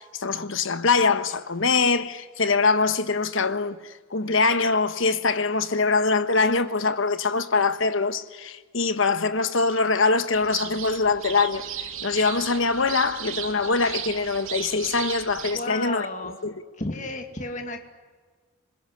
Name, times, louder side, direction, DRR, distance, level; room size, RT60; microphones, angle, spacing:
voice 1, 0.0-16.5, left 4 dB, 60° left, 1.3 m, -23 dB
sound 1, 10.3-15.6, right 9 dB, 65° right, 2.5 m, -35 dB
voice 2, 15.5-16.4 16.8-17.8, left 2 dB, 35° left, 2.4 m, -32 dB
27.0 x 20.0 x 10.0 m
head